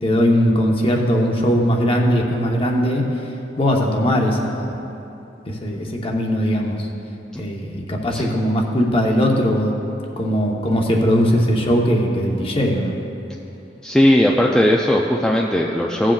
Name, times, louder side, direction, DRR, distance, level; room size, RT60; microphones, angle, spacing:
voice 1, 0.0-3.0 3.6-4.8 5.4-6.9 7.4-9.7 10.2-12.9, equal, 30° left, 0 dB, 0.9 m, -19 dB
voice 2, 13.8-16.1, left 1 dB, 5° left, -2 dB, 0.3 m, -17 dB
16.5 x 7.4 x 2.4 m, 2.9 s
head